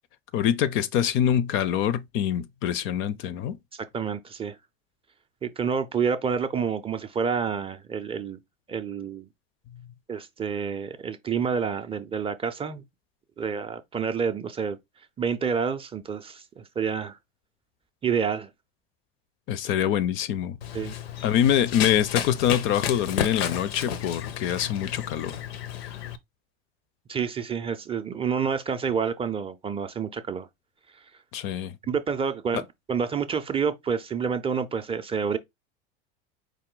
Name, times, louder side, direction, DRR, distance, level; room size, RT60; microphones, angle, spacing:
voice 1, 0.3-3.6 19.5-20.6 21.2-25.4 31.3-31.7 32.5-32.6, left 10 dB, 45° left, 0.4 m, -25 dB
voice 2, 3.9-4.6 5.4-8.4 8.7-9.3 10.1-12.8 13.4-14.8 15.2-17.2 18.0-18.5 20.7-20.9 27.1-30.5 31.9-35.4, right 6 dB, 20° right, 0.4 m, -28 dB
Run, 20.6-26.2, left 9 dB, 85° left, 0.6 m, -32 dB
4.7 x 2.2 x 3.7 m
hypercardioid pair, 100°, 30 cm